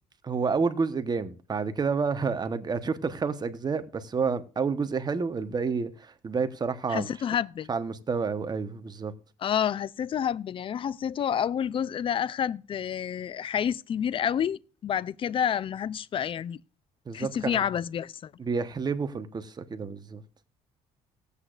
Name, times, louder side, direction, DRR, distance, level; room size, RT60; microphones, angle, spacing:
voice 1, 0.2-7.1 7.7-9.1 17.1-17.6 18.4-20.2, right 5 dB, 30° right, 1.1 m, -29 dB
voice 2, 6.9-7.7 9.4-16.6 17.1-18.3, left 9 dB, 40° left, 0.5 m, -29 dB
18.5 x 8.3 x 2.5 m
cardioid pair, 95°, 14 cm